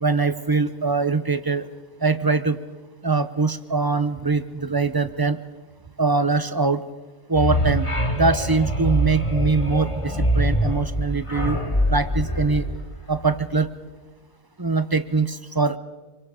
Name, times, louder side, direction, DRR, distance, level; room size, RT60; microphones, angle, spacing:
voice 1, 0.0-1.7 2.0-2.6 3.0-5.4 6.0-6.8 7.3-7.9 8.1-11.6 11.9-12.6 13.1-13.7 14.6-15.8, right 4 dB, 20° right, 12 dB, 0.6 m, -22 dB
sound 1, 7.3-13.6, equal, 20° left, 2.0 m, -24 dB
25.5 x 25.0 x 5.1 m, 1.2 s
omnidirectional pair, 1.5 m